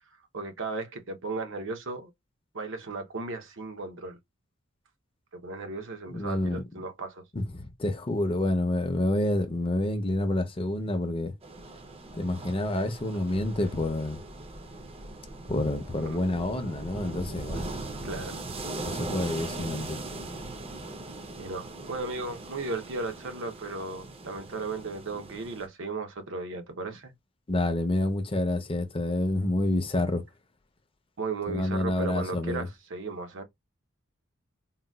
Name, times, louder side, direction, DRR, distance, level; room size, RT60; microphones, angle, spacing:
voice 1, 0.3-2.1 2.5-4.2 5.3-7.2 16.1-16.2 18.0-18.4 21.3-27.1 31.2-33.4, right 3 dB, 65° right, 0.8 m, -35 dB
voice 2, 6.1-6.6 7.3-11.3 12.2-14.2 15.5-17.7 18.8-20.0 27.5-30.2 31.5-32.7, left 1 dB, 25° left, 0.6 m, -28 dB
sound 1, 11.4-25.7, right 2 dB, 30° right, 0.6 m, -40 dB
3.9 x 2.2 x 2.2 m
head